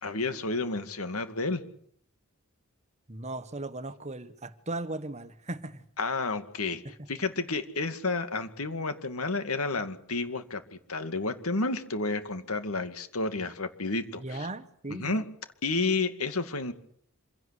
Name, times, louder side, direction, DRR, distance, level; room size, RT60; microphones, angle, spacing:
voice 1, 0.0-1.6 6.0-6.8 7.1-10.6 10.9-14.5 14.9-15.2 15.6-16.7, left 3 dB, 85° left, 2.3 m, -31 dB
voice 2, 3.1-5.8 7.0-7.1 14.2-15.2, right 2 dB, 30° right, 1.4 m, -37 dB
26.0 x 17.0 x 8.3 m
head